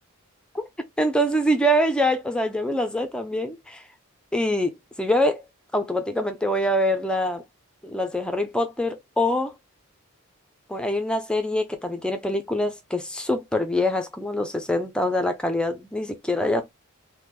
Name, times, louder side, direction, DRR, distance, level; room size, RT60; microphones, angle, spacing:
voice 1, 1.0-3.8 4.3-4.7 5.0-5.4 5.7-7.4 7.8-9.5 10.7-16.6, left 1 dB, 5° left, 0.3 m, -24 dB
3.4 x 2.1 x 2.9 m
head